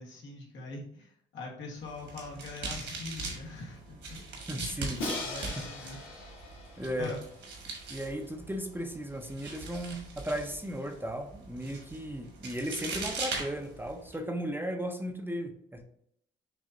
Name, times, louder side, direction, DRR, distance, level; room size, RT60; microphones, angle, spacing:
voice 1, 0.0-3.8 4.1-4.2 4.6-6.0 6.9-7.2, left 3 dB, 70° left, -1 dB, 1.4 m, -43 dB
sound 1, 1.8-14.2, right 3 dB, 65° right, 1.5 m, -41 dB
voice 2, 4.5-6.0 6.8-7.1 7.7-15.8, equal, 10° right, 3 dB, 0.6 m, -36 dB
Crash cymbal, 5.0-7.9, left 2 dB, 85° left, 1.1 m, -40 dB
6.4 x 2.7 x 2.6 m, 0.71 s
cardioid pair, 90°, 20 cm